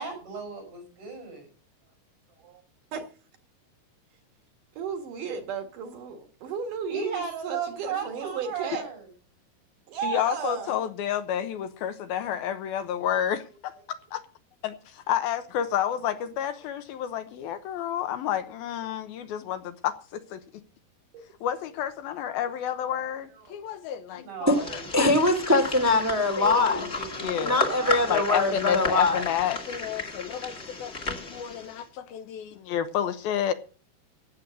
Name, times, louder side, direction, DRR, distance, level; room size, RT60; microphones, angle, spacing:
voice 1, 0.0-1.5 6.9-9.0 24.1-24.8 26.5-28.1, right 6 dB, 85° right, 8.2 m, -36 dB
voice 2, 4.8-8.9 9.9-10.8 17.4-17.5 21.1-21.3 23.4-23.8, right 7 dB, 60° right, 2.7 m, -34 dB
voice 3, 10.0-13.7 14.1-14.2 14.6-20.4 21.4-24.6 26.4-26.9 27.2-27.6 28.1-33.5, left 10 dB, 75° left, 2.4 m, -30 dB
sound 1, 24.5-31.8, left 3 dB, 35° left, 1.0 m, -33 dB
voice 4, 24.9-26.9 27.4-29.2, left 2 dB, 15° right, 0.6 m, -22 dB
15.5 x 7.7 x 6.5 m
omnidirectional pair, 5.0 m